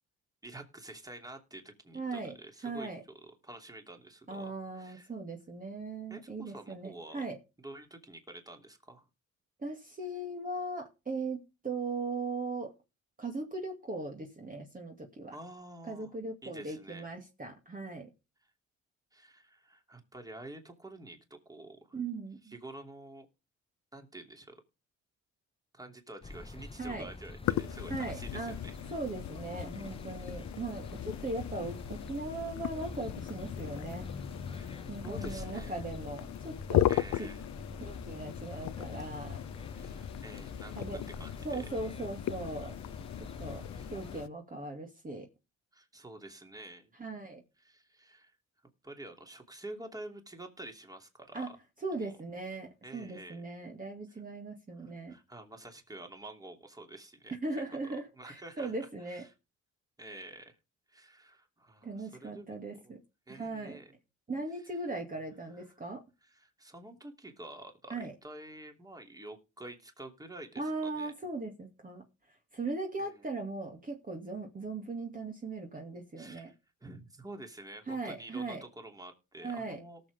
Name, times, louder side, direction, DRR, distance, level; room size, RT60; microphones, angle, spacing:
voice 1, 0.4-5.1 6.1-7.2 7.6-9.1 15.3-16.2 16.4-17.1 19.1-22.0 22.4-23.3 23.9-24.6 25.7-28.9 34.4-35.8 36.9-37.4 39.7-41.7 43.7-43.9 45.7-46.9 47.6-48.3 48.8-51.6 52.0-52.2 52.8-53.5 54.8-59.3 60.0-60.6 60.9-62.9 63.3-64.0 64.6-64.8 65.5-65.8 66.2-71.1 73.0-73.3 76.2-76.5 76.8-80.0, right 1 dB, 10° right, 4 dB, 2.8 m, -49 dB
voice 2, 1.9-2.3 2.6-3.0 4.3-7.4 9.6-12.7 13.2-15.3 15.9-18.1 21.9-22.6 26.8-27.1 27.9-28.5 28.9-34.1 34.9-36.9 37.2-37.3 37.8-39.4 40.8-41.0 41.4-42.8 43.2-43.7 43.9-45.3 47.0-47.4 51.3-51.5 51.8-55.2 57.4-59.3 61.8-63.0 63.3-63.8 64.3-66.0 67.9-68.1 70.6-72.0 72.5-76.5 77.9-78.6 79.4-79.8, right 3 dB, 30° right, 2 dB, 2.4 m, -39 dB
sound 1, 26.2-44.2, left 3 dB, 20° left, 0.9 m, -45 dB
sound 2, 27.4-44.3, left 13 dB, 65° left, 0.6 m, -37 dB
18.5 x 7.2 x 3.5 m, 0.28 s
cardioid pair, 90°, 30 cm